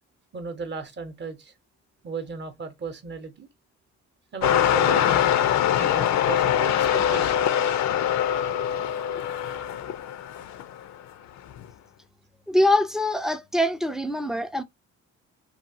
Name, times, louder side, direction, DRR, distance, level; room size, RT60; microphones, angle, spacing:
voice 1, 0.3-1.5 2.0-3.5 4.3-5.5 5.7-7.5 8.4-8.5, right 4 dB, 35° right, 0.7 m, -35 dB
sound 1, 4.4-10.8 11.5-11.6, left 10 dB, 65° left, 0.5 m, -23 dB
voice 2, 12.5-14.6, left 1 dB, ahead, 0.3 m, -23 dB
2.8 x 2.3 x 2.6 m
cardioid pair, 90°, 30 cm